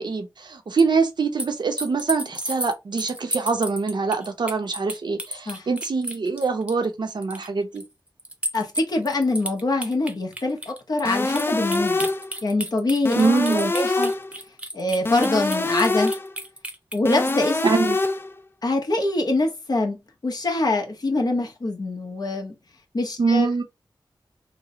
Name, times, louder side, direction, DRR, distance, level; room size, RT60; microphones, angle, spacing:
voice 1, 0.0-7.8 13.2-13.7 17.6-18.0 23.2-23.6, right 4 dB, 65° right, 0.7 m, -24 dB
sound 1, 0.8-0.9 1.4-6.8 7.2-7.5 7.8-7.9 8.2-17.0, equal, 15° right, 0.8 m, -32 dB
voice 2, 8.5-12.1 12.4-14.1 14.7-16.1 16.9-17.6 18.6-20.0 20.2-22.5 22.9-23.5, left 2 dB, 55° left, 1.0 m, -24 dB
sound 2, 11.1-12.3 13.1-14.3 15.1-16.3 17.1-18.3, left 2 dB, 30° left, 0.4 m, -24 dB
3.1 x 2.1 x 3.7 m
wide cardioid pair, 80°, 8 cm